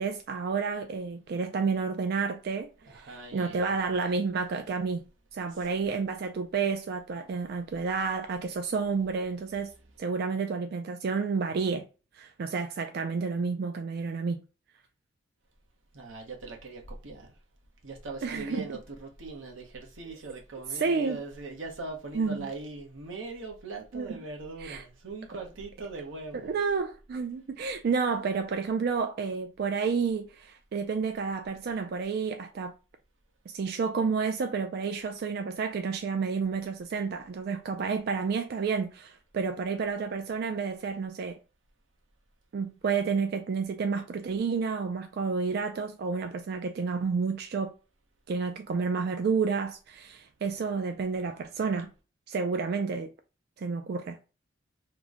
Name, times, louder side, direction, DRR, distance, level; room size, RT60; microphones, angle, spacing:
voice 1, 0.0-5.0 5.3-9.7 10.0-11.9 12.1-14.4 18.2-18.6 20.7-21.2 22.1-22.5 23.9-24.2 24.6-24.8 26.4-32.7 33.5-41.4 42.5-47.7 48.3-51.9 52.3-53.1 53.6-54.2, right 5 dB, 55° right, 0.3 m, -30 dB
voice 2, 2.8-3.9 5.5-5.7 15.9-17.4 17.8-26.6, right 3 dB, 90° right, 0.9 m, -41 dB
3.0 x 2.1 x 3.6 m
head